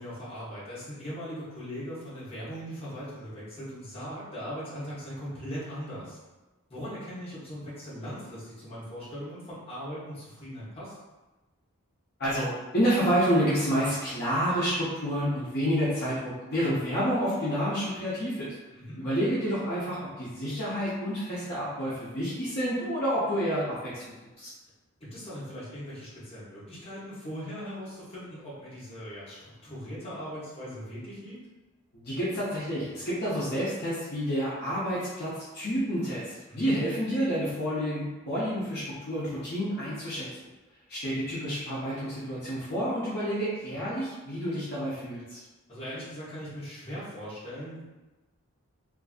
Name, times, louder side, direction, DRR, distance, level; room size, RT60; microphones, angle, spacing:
voice 1, 0.0-6.2 6.7-10.9 18.7-19.0 25.0-31.4 36.5-36.8 43.7-43.9 45.7-47.8, equal, 25° left, -9 dB, 0.9 m, -39 dB
voice 2, 12.2-18.5 19.0-24.5 31.9-40.3 40.9-45.4, equal, 45° left, -10 dB, 0.6 m, -29 dB
2.5 x 2.5 x 2.4 m, 1.1 s
head